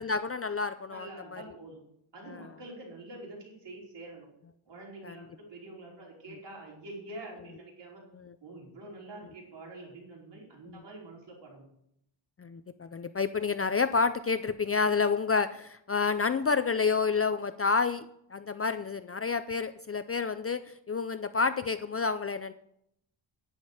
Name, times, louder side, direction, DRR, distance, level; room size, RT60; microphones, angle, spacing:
voice 1, 0.0-1.4 2.3-2.4 5.0-5.2 8.2-8.3 10.7-10.8 12.4-18.1 18.3-22.5, left 4 dB, 30° left, 11 dB, 0.4 m, -29 dB
voice 2, 0.9-1.8 2.1-4.3 4.6-8.0 8.4-11.7, right 2 dB, 60° right, -3 dB, 5.0 m, -46 dB
10.5 x 9.7 x 4.9 m, 0.73 s
wide cardioid pair, 140°, 48 cm